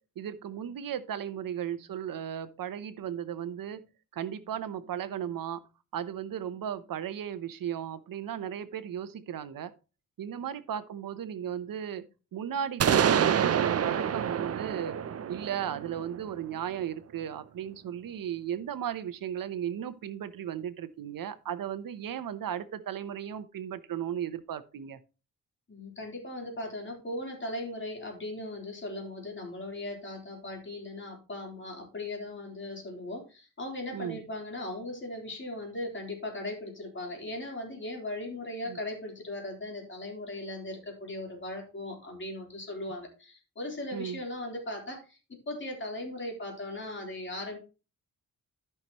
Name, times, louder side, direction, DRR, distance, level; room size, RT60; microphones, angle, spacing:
voice 1, 0.2-3.8 4.1-5.6 5.9-9.7 10.2-12.0 12.3-15.0 15.3-25.0 33.9-34.2 38.7-38.8 43.9-44.2, right 9 dB, 75° right, 13 dB, 0.8 m, -36 dB
sound 1, 12.8-16.6, right 8 dB, 45° right, 0.6 m, -27 dB
voice 2, 25.7-45.2 45.5-47.6, left 1 dB, 35° left, 0 dB, 3.7 m, -38 dB
13.5 x 5.9 x 3.0 m, 0.32 s
wide cardioid pair, 130°, 34 cm